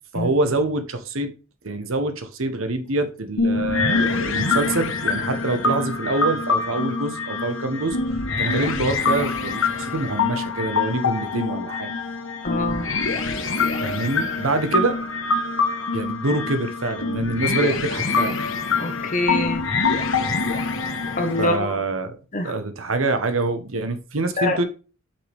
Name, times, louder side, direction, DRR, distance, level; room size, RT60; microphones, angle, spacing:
voice 1, 0.1-1.3 1.6-8.0 8.4-11.9 13.8-15.0 15.9-18.4 21.4-22.2 22.4-24.6, right 2 dB, 75° right, 1.2 m, -25 dB
sound 1, 3.4-21.6, left 4 dB, 70° left, 1.4 m, -25 dB
voice 2, 12.4-12.9 18.8-19.7 21.2-21.8 22.3-22.5 24.4-24.6, left 2 dB, 40° left, 1.4 m, -24 dB
8.3 x 5.8 x 3.6 m
head